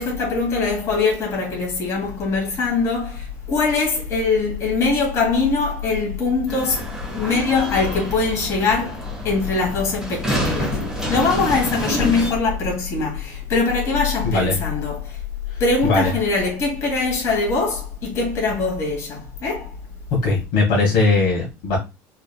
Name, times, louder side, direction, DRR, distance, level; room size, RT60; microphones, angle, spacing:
voice 1, 0.0-15.2 15.6-19.9, left 4 dB, 35° left, 2.4 m, -22 dB
sound 1, 6.5-12.3, equal, 5° right, 1.6 m, -27 dB
voice 2, 14.2-14.6 15.8-16.1 20.2-21.8, left 3 dB, 65° left, 1.9 m, -19 dB
4.8 x 3.2 x 2.3 m
cardioid pair, 155°, 8 cm